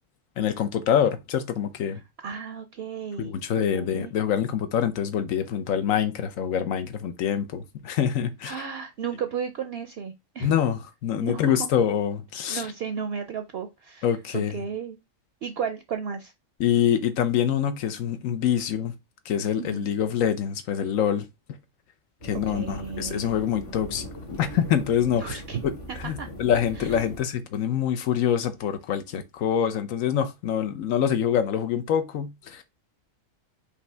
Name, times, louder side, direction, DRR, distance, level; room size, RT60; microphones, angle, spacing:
voice 1, 0.4-2.0 3.2-8.6 10.4-12.6 14.0-14.6 16.6-18.9 19.3-21.3 22.2-25.4 26.0-32.6, left 9 dB, 85° left, 1.1 m, -25 dB
voice 2, 2.2-3.3 3.7-4.1 8.4-10.5 11.1-11.6 12.5-14.1 14.3-15.0 15.4-16.3 19.6-19.9 22.5-23.4 25.2-25.6 25.9-26.3 26.8-27.1, right 7 dB, 60° right, 0.7 m, -34 dB
sound 1, 22.2-27.2, right 1 dB, 50° left, 1.7 m, -40 dB
5.1 x 2.8 x 3.3 m
omnidirectional pair, 1.4 m